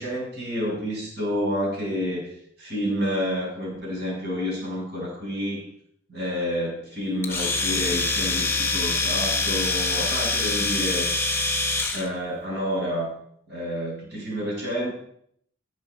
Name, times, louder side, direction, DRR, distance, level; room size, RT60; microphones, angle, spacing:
voice 1, 0.0-5.6 6.1-11.1 11.9-13.1 13.5-14.9, equal, 55° right, -3 dB, 7.6 m, -29 dB
Domestic sounds home sounds, 7.2-12.1, left 3 dB, 10° left, 1.3 m, -25 dB
19.5 x 9.0 x 4.5 m, 0.68 s
head